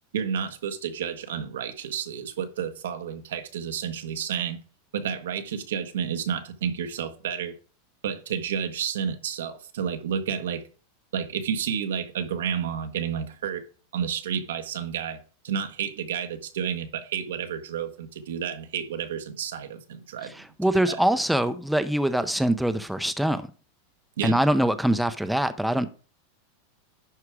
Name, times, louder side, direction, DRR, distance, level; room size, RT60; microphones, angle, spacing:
voice 1, 0.1-4.6 4.9-7.6 8.0-10.6 11.1-13.7 13.9-15.2 15.4-20.3 20.9-21.0 24.2-24.4, right 8 dB, 90° right, 1.4 m, -30 dB
voice 2, 20.2-23.5 24.2-25.9, right 1 dB, ahead, 0.6 m, -24 dB
11.0 x 4.8 x 4.8 m
supercardioid pair, 135°, 0 cm